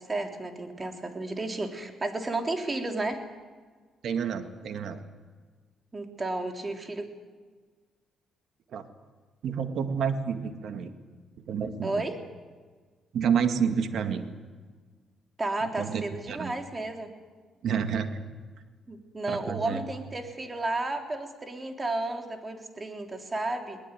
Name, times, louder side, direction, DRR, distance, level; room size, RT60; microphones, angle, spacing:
voice 1, 0.0-3.2 5.9-7.1 11.8-12.2 15.4-17.1 18.9-23.8, right 2 dB, 25° right, 4 dB, 3.4 m, -32 dB
voice 2, 4.0-5.0 8.7-8.9 9.4-10.9 11.5-11.9 13.1-14.3 15.6-16.5 17.6-18.2 19.3-19.8, right 7 dB, 70° right, 8 dB, 2.1 m, -29 dB
21.0 x 20.0 x 9.2 m, 1.5 s
cardioid pair, 90°, 0 cm